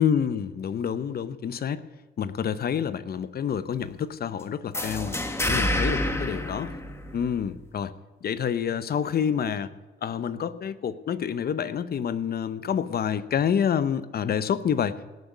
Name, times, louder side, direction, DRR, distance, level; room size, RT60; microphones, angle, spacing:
voice 1, 0.0-1.8 2.2-6.7 7.1-7.9 8.2-9.7 10.0-15.2, left 8 dB, 50° left, 14 dB, 0.8 m, -28 dB
sound 1, 4.7-7.5, left 1 dB, 15° left, 1.6 m, -28 dB
18.5 x 6.6 x 8.3 m, 1.3 s
cardioid pair, 90°, 20 cm